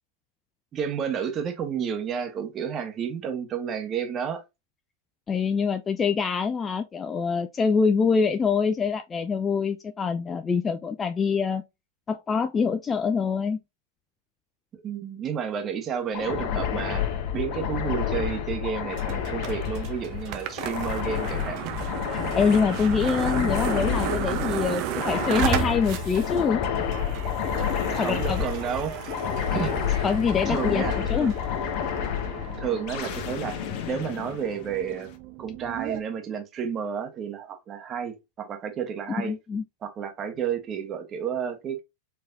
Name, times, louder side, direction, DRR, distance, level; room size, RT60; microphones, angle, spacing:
voice 1, 0.7-4.4 14.7-17.1 17.3-21.6 27.9-29.1 29.5-29.7 30.5-31.4 32.6-33.6 33.9-35.1 35.4-39.3 39.8-41.8, right 7 dB, 30° right, 1.3 m, -31 dB
voice 2, 5.3-11.6 12.1-13.6 22.1-26.6 28.0-28.4 30.0-31.3 39.2-39.6, left 5 dB, 20° left, 0.4 m, -25 dB
sound 1, 16.1-35.0, left 9 dB, 50° left, 1.0 m, -30 dB
sound 2, 18.9-36.0, right 11 dB, 50° right, 0.7 m, -34 dB
4.6 x 3.2 x 2.5 m
hypercardioid pair, 100°, 0 cm